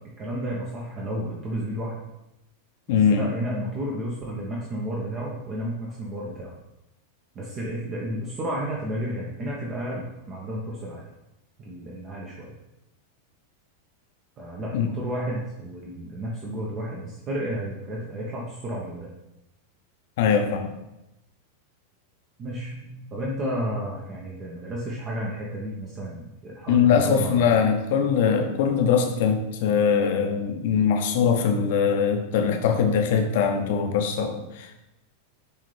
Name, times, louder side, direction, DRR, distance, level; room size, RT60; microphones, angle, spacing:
voice 1, 0.2-1.9 2.9-6.6 7.3-11.0 11.6-12.6 14.4-19.1 22.4-27.7, right 1 dB, 30° right, -3 dB, 1.1 m, -32 dB
voice 2, 2.9-3.2 14.7-14.9 20.2-20.6 26.7-34.7, left 6 dB, 50° left, 4 dB, 0.9 m, -22 dB
10.5 x 3.7 x 3.4 m, 0.93 s
figure-of-eight pair, 90°, 0 cm